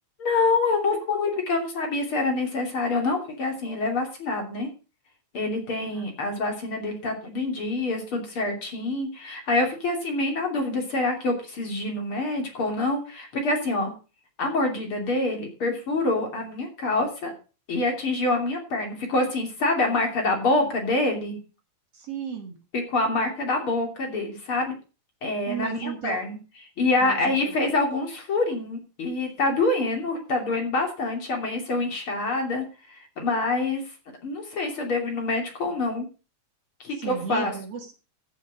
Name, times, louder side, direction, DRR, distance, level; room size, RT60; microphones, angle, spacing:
voice 1, 0.2-4.7 5.3-13.9 14.4-17.3 17.7-21.4 22.7-24.8 25.2-26.4 26.8-34.0 34.2-36.1 36.8-37.5, left 2 dB, 45° left, 2 dB, 3.6 m, -26 dB
voice 2, 21.9-22.6 25.5-26.2 27.0-27.6 37.0-37.9, right 7 dB, 55° right, 4 dB, 2.8 m, -34 dB
14.5 x 7.2 x 5.2 m, 0.33 s
omnidirectional pair, 3.4 m